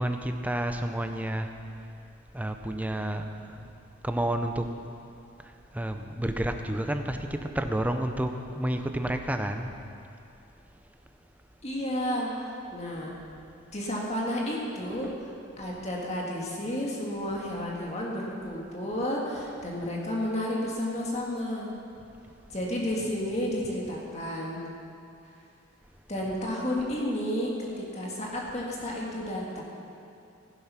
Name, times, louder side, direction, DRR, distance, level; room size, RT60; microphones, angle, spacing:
voice 1, 0.0-1.6 2.3-3.7 4.0-4.7 5.4-9.8 15.0-15.1 26.2-26.3, right 1 dB, 10° right, 6 dB, 0.7 m, -30 dB
voice 2, 11.6-12.3 12.7-13.1 13.7-15.3 15.6-21.7 22.5-24.6 26.1-29.6, left 1 dB, 35° left, -3 dB, 1.8 m, -31 dB
15.0 x 10.5 x 5.8 m, 2.6 s
head